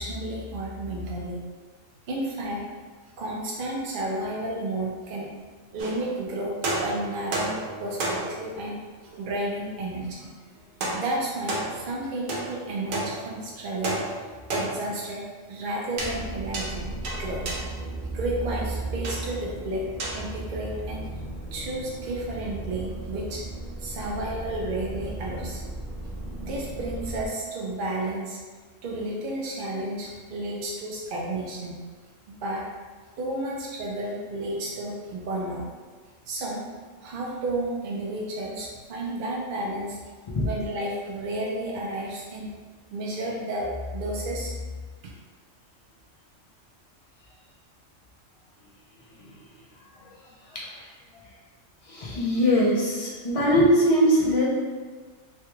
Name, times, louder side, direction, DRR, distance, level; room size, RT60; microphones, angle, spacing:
voice 1, 0.0-1.4 2.1-2.6 3.2-5.4 5.7-14.1 14.5-17.4 18.1-19.9 20.1-21.1 21.5-23.4 23.8-25.6 26.4-28.4 28.8-31.8 32.4-32.7 33.2-35.7 36.2-36.7 37.0-40.0 40.4-42.5 42.9-44.5 45.0-45.2, right 1 dB, 65° right, -3 dB, 0.5 m, -32 dB
sound 1, 5.8-6.3 6.6-8.6 10.8-12.0 12.3-13.5 13.8-15.1 16.0-16.2 16.5-17.8 19.0-19.3 20.0-20.3, right 2 dB, 85° right, 1.0 m, -32 dB
sound 2, 15.9-27.3, right 2 dB, ahead, 0.6 m, -36 dB
voice 2, 50.4-51.3 51.8-54.5, equal, 45° left, -6 dB, 0.4 m, -23 dB
3.2 x 2.2 x 3.0 m, 1.5 s
omnidirectional pair, 1.3 m